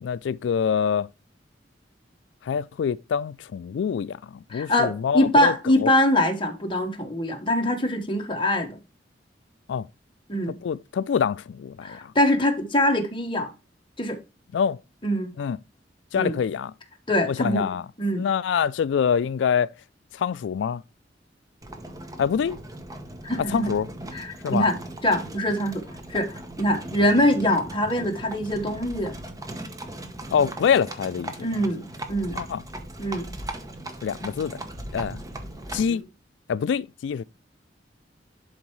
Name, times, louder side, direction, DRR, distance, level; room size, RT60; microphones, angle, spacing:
voice 1, 0.0-1.1 2.4-5.5 5.8-5.9 9.7-9.9 10.6-12.1 14.5-14.8 15.4-15.6 16.1-16.7 17.3-17.9 18.1-19.7 20.1-20.8 22.2-22.6 23.4-23.9 24.4-24.7 30.3-31.7 32.3-32.6 34.0-34.6 34.9-35.2 35.7-36.0 36.5-37.2, left 7 dB, 75° left, 0.3 m, -25 dB
voice 2, 4.5-8.8 10.3-10.5 11.8-13.5 14.0-14.2 15.0-15.3 16.1-16.4 17.1-17.7 18.0-18.2 23.2-23.7 24.1-24.8 25.0-25.8 26.1-29.2 31.4-32.4 33.0-33.2 35.9-36.0, left 1 dB, 30° left, 1.4 m, -23 dB
Livestock farm animals working animals, 21.6-36.0, right 1 dB, 20° right, 0.9 m, -38 dB
11.0 x 4.5 x 3.1 m
head